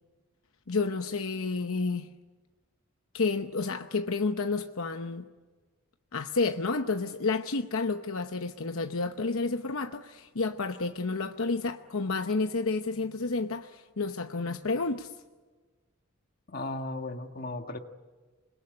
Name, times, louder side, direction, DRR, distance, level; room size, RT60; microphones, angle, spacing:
voice 1, 0.7-2.1 3.1-5.2 6.1-15.1, left 3 dB, 70° left, 0.9 m, -30 dB
voice 2, 16.5-17.8, left 2 dB, 40° left, 1.6 m, -36 dB
26.5 x 21.5 x 9.7 m
head